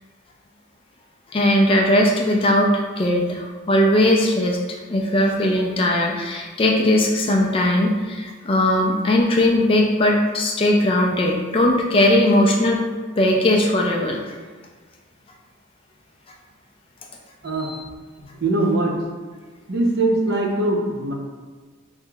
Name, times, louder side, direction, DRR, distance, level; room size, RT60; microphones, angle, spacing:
voice 1, 1.3-12.9 13.2-14.4 17.6-17.8, left 1 dB, 25° left, 0 dB, 0.3 m, -19 dB
voice 2, 18.2-18.9 19.7-21.1, right 2 dB, 55° right, -1 dB, 0.6 m, -21 dB
5.6 x 2.1 x 2.2 m, 1.4 s
head